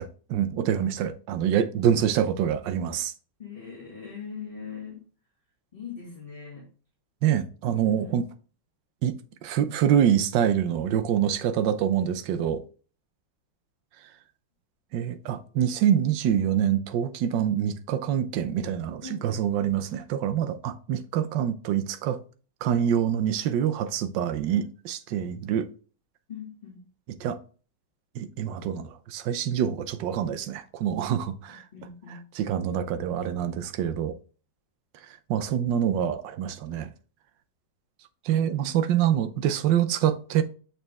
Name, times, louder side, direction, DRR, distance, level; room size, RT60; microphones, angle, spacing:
voice 1, 0.0-3.1 7.2-8.3 9.0-9.1 9.4-12.6 14.9-22.2 22.6-25.7 27.2-27.4 28.1-31.6 32.1-34.1 35.3-36.9 38.2-40.4, right 9 dB, 80° right, 1.3 m, -26 dB
voice 2, 3.4-5.0 5.7-6.6 7.8-8.2 15.2-15.4 19.0-19.2 26.3-26.8 31.7-32.3 39.0-39.2, left 6 dB, 30° left, 2.1 m, -41 dB
6.7 x 4.4 x 3.4 m
omnidirectional pair, 2.0 m